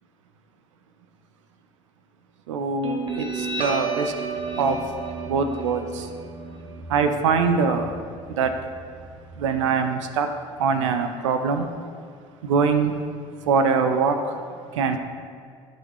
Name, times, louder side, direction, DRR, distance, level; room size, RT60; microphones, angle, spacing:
voice 1, 2.5-4.1 4.5-5.0 5.2-6.1 6.9-8.5 9.3-10.3 10.6-11.7 12.4-12.9 13.4-15.0, right 5 dB, 90° right, 0.6 m, -23 dB
Guitar, 2.8-9.8, right 4 dB, 35° right, 1.3 m, -33 dB
11.5 x 5.5 x 3.0 m
hypercardioid pair, 70°, 15 cm